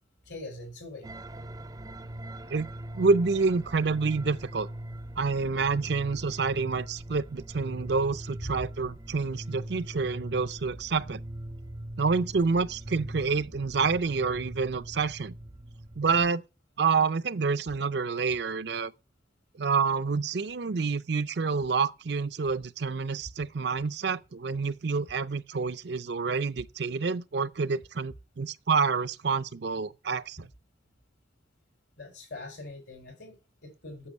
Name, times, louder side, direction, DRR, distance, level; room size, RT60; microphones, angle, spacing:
voice 1, 0.2-1.2 32.0-34.1, left 2 dB, 75° left, 4.9 m, -43 dB
sound 1, 1.0-16.3, right 1 dB, 20° right, 0.5 m, -41 dB
voice 2, 2.9-4.7 5.2-11.2 12.0-15.3 16.0-16.4 16.8-18.9 19.6-30.5, right 4 dB, 65° right, 0.5 m, -28 dB
8.6 x 7.0 x 8.1 m
head